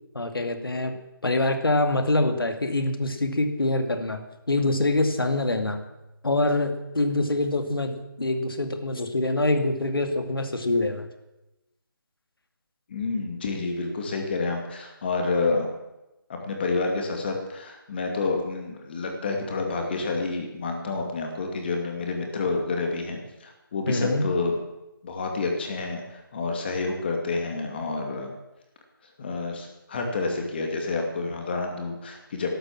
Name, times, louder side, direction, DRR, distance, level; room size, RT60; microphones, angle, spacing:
voice 1, 0.1-0.9 1.2-4.2 4.5-5.8 6.2-11.1 23.9-24.3, left 2 dB, 85° left, 7 dB, 2.4 m, -25 dB
voice 2, 12.9-15.7 16.3-24.6 25.0-28.3 29.2-32.5, left 3 dB, 30° left, 2 dB, 2.5 m, -29 dB
12.5 x 12.0 x 7.5 m, 0.97 s
figure-of-eight pair, 170°, 12 cm